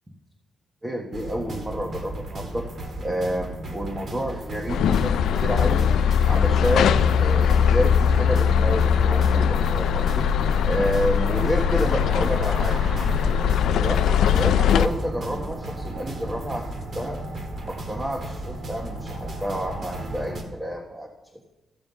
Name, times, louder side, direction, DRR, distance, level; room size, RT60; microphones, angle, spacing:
voice 1, 0.8-2.7 3.0-5.9 6.2-10.3 10.7-13.0 13.8-16.7 16.9-17.2 17.6-21.5, equal, 20° right, 1 dB, 1.5 m, -29 dB
sound 1, 1.1-20.4, right 1 dB, 55° right, 2.0 m, -35 dB
sound 2, 4.7-14.9, left 8 dB, 85° left, 0.5 m, -20 dB
14.5 x 7.2 x 5.4 m, 1.0 s
cardioid pair, 75°, 0 cm